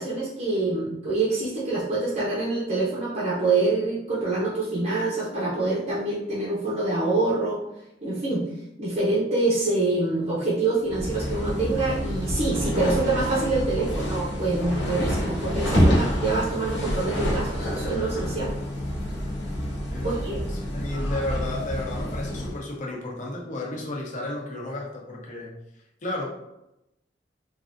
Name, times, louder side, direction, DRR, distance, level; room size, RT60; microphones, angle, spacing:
voice 1, 0.0-7.6 8.0-8.4 8.8-18.5 20.0-20.4, right 3 dB, 40° right, -7 dB, 0.7 m, -26 dB
sound 1, 10.9-22.6, equal, 65° left, 1.0 m, -27 dB
voice 2, 19.9-25.5 26.0-26.3, left 2 dB, 45° left, -2 dB, 0.7 m, -33 dB
3.2 x 2.5 x 2.5 m, 0.87 s
head